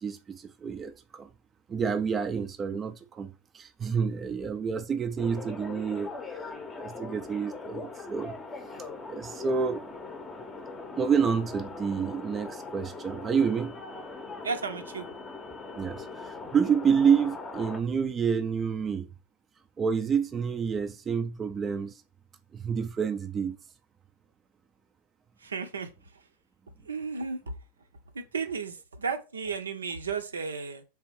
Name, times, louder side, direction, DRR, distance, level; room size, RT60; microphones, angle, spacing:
voice 1, 0.0-1.3 1.7-6.5 6.8-8.4 9.1-9.8 11.0-13.7 15.8-19.1 19.8-22.0 22.5-23.6, right 6 dB, 20° right, 0.4 m, -28 dB
sound 1, 5.2-17.8, left 3 dB, 15° left, 0.7 m, -41 dB
voice 2, 14.4-15.1 25.4-25.9 26.8-27.5 28.1-30.8, right 5 dB, 70° right, 0.6 m, -33 dB
3.5 x 3.3 x 4.4 m
figure-of-eight pair, 90°, 0 cm